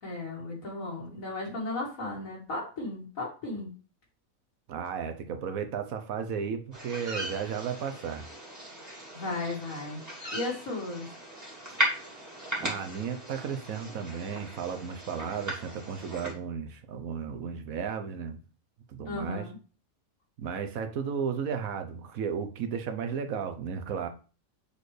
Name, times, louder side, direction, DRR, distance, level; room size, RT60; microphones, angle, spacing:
voice 1, 0.0-3.7 9.1-10.0 10.3-11.1 19.1-19.6, left 2 dB, 70° left, -3 dB, 2.2 m, -35 dB
voice 2, 4.7-8.2 12.6-18.4 18.9-19.5 20.4-24.1, right 7 dB, 80° right, 7 dB, 1.2 m, -34 dB
sound 1, 6.7-16.3, equal, 10° right, 1.9 m, -37 dB
6.9 x 4.2 x 3.2 m, 0.36 s
omnidirectional pair, 1.5 m